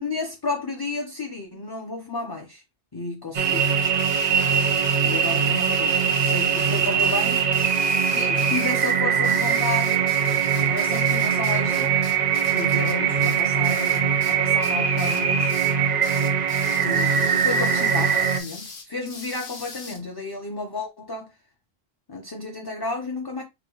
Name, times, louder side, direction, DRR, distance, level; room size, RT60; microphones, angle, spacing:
voice 1, 0.0-2.6 2.9-3.8 5.0-7.5 8.1-10.1 10.6-12.0 12.5-15.5 16.8-21.3 22.1-23.4, left 3 dB, 25° left, 0.6 m, -32 dB
sound 1, 3.3-18.4, right 7 dB, 50° right, 0.6 m, -22 dB
sound 2, 3.4-14.3 14.6-15.2 15.5-15.7 16.0-20.0, left 4 dB, 70° left, 1.2 m, -40 dB
4.5 x 2.2 x 3.8 m
omnidirectional pair, 1.1 m